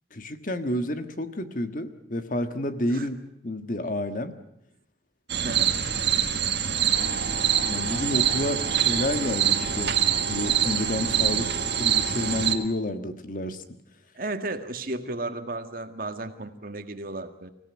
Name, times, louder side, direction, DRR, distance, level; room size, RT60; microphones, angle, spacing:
voice 1, 0.1-4.3 5.4-5.6 6.0-6.2 7.6-9.9 10.3-11.5 11.8-13.6, left 1 dB, 50° left, 8 dB, 1.6 m, -30 dB
sound 1, 5.3-12.5, right 9 dB, 70° right, 1.8 m, -25 dB
voice 2, 5.4-5.8 14.2-17.5, right 2 dB, 55° right, 8 dB, 1.8 m, -34 dB
sound 2, 6.9-12.5, right 1 dB, 65° left, 4.3 m, -37 dB
25.5 x 16.5 x 9.5 m, 0.78 s
head